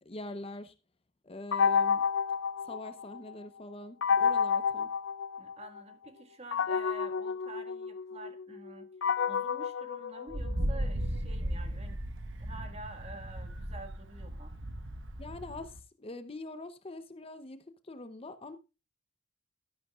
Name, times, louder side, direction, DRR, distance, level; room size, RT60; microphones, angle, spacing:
voice 1, 0.1-0.7 1.2-2.0 2.6-4.9 15.2-17.6 17.8-18.6, left 2 dB, 30° left, 0.7 m, -43 dB
sound 1, 1.5-3.3 4.0-5.8 6.5-10.8, left 6 dB, 65° left, 0.5 m, -30 dB
voice 2, 5.4-12.0 12.4-14.5, right 2 dB, 30° right, 1.7 m, -48 dB
Wind, 10.3-15.8, equal, 65° right, 1.3 m, -36 dB
12.5 x 11.0 x 2.4 m
head